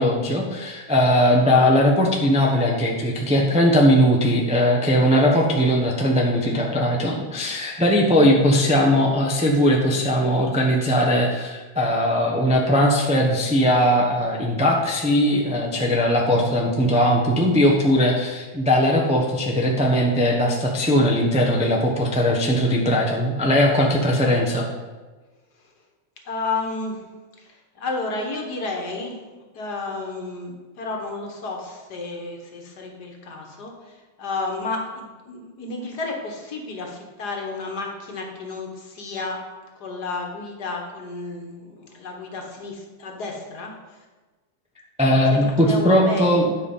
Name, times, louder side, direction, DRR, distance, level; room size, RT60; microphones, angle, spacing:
voice 1, 0.0-24.7 45.0-46.5, equal, 5° right, -2 dB, 0.6 m, -19 dB
voice 2, 26.3-27.0 27.4-29.2 29.5-39.4 39.8-43.7 45.2-46.3, left 3 dB, 60° left, 1 dB, 1.8 m, -32 dB
10.0 x 5.1 x 5.4 m, 1.3 s
omnidirectional pair, 2.1 m